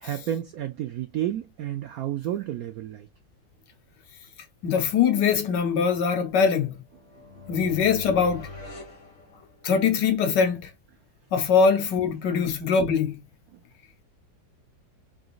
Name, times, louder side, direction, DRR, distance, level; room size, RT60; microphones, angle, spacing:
voice 1, 0.0-3.1, right 11 dB, 75° right, 0.8 m, -31 dB
voice 2, 4.6-6.8 7.5-8.5 9.6-10.7 11.3-13.2, left 6 dB, 70° left, 1.5 m, -22 dB
sound 1, 6.9-10.0, left 2 dB, 45° left, 1.4 m, -42 dB
3.9 x 3.7 x 2.4 m
omnidirectional pair, 2.0 m